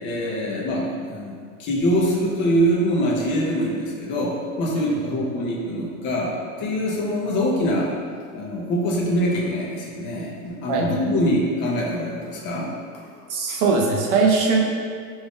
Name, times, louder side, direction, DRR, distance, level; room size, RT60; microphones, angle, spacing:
voice 1, 0.0-1.3 1.6-7.9 8.3-13.0 13.5-13.6, equal, 25° left, -3 dB, 0.6 m, -24 dB
voice 2, 13.3-14.6, right 4 dB, 35° right, -1 dB, 0.4 m, -20 dB
4.8 x 2.6 x 3.5 m, 2.1 s
supercardioid pair, 160°, 44 cm